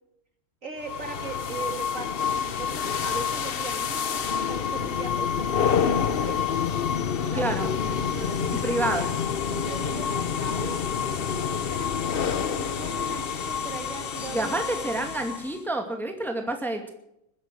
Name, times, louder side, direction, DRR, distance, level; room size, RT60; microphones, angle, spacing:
voice 1, 0.6-5.7 5.9-6.6 7.2-9.1 9.5-10.8 11.3-15.1, right 2 dB, 40° right, 5 dB, 2.3 m, -39 dB
sound 1, 0.8-15.6, left 7 dB, 80° left, 0.5 m, -28 dB
voice 2, 7.3-7.7 8.6-9.0 14.3-16.9, right 2 dB, ahead, 4 dB, 2.1 m, -28 dB
21.0 x 10.0 x 6.2 m, 0.81 s
omnidirectional pair, 2.1 m